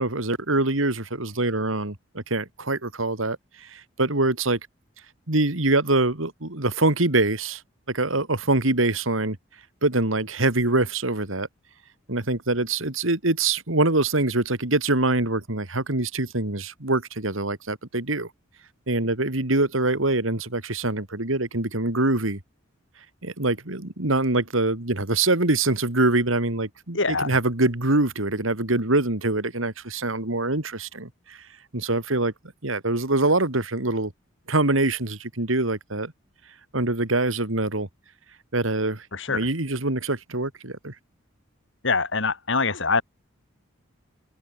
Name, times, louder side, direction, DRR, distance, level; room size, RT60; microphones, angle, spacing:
voice 1, 0.0-4.6 5.3-7.6 7.9-9.4 9.8-11.5 12.1-18.3 18.9-22.4 23.2-31.4 31.7-32.3 32.6-34.1 34.5-36.1 36.7-37.9 38.5-40.9, right 2 dB, 80° right, 2.9 m, -24 dB
voice 2, 26.9-27.4 39.1-39.5 41.8-43.0, left 4 dB, 65° left, 3.7 m, -24 dB
head